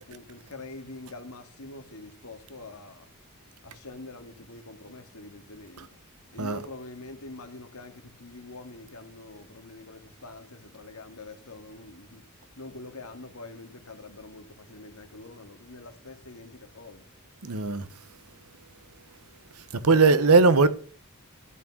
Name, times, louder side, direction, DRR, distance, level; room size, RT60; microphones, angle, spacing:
voice 1, 0.0-3.0 3.6-6.0 6.3-12.3 12.6-17.1 19.7-20.5, left 2 dB, 85° left, 2.0 m, -44 dB
voice 2, 17.4-17.9 19.7-20.7, right 4 dB, 85° right, 1.0 m, -19 dB
13.5 x 6.2 x 7.9 m
head